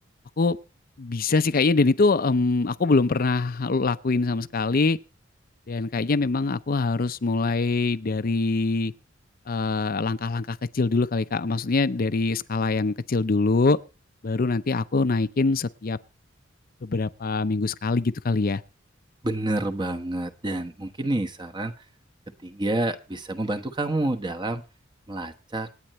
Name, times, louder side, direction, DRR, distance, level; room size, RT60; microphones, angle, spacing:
voice 1, 1.0-5.0 5.7-8.9 9.5-13.8 14.2-16.0 16.8-18.6, left 3 dB, 50° left, 0.6 m, -24 dB
voice 2, 19.2-21.7 22.4-24.6 25.1-25.7, right 2 dB, 25° right, 1.1 m, -28 dB
26.5 x 9.1 x 3.1 m
head